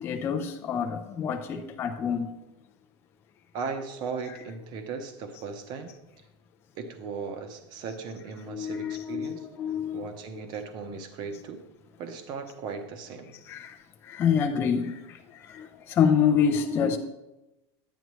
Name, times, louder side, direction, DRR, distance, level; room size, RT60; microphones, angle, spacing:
voice 1, 0.0-2.3 8.5-10.1 13.5-13.8 14.0-17.0, left 7 dB, 15° left, 0.4 m, -27 dB
voice 2, 3.5-5.9 6.8-9.5 9.9-11.6 12.0-13.4, right 5 dB, 35° right, 0.9 m, -37 dB
11.0 x 9.1 x 3.1 m
supercardioid pair, 180°, 14 cm